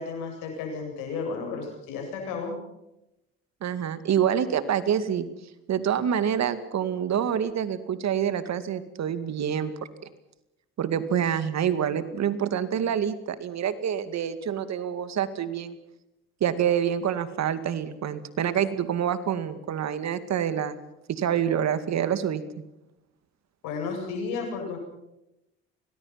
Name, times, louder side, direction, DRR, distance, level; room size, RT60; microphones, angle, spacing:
voice 1, 0.0-2.5 23.6-24.8, left 4 dB, 85° left, 3 dB, 8.0 m, -33 dB
voice 2, 3.6-5.3 5.7-9.7 10.8-15.8 16.4-20.8 21.1-22.4, right 9 dB, 60° right, 12 dB, 2.3 m, -27 dB
25.0 x 20.0 x 5.9 m, 0.89 s
supercardioid pair, 70°, 31 cm